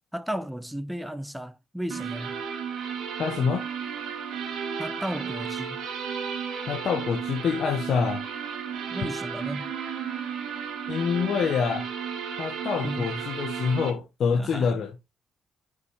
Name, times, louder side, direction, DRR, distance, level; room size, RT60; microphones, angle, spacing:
voice 1, 0.1-2.4 4.8-5.9 8.9-9.7 12.8-13.2 14.4-14.8, equal, 5° right, 1.0 m, -34 dB
sound 1, 1.9-13.9, right 7 dB, 80° right, 2.1 m, -33 dB
voice 2, 3.2-3.7 6.7-8.2 10.9-11.9 12.4-14.9, left 6 dB, 65° left, 1.1 m, -26 dB
6.0 x 4.9 x 4.6 m
cardioid pair, 90°, 0 cm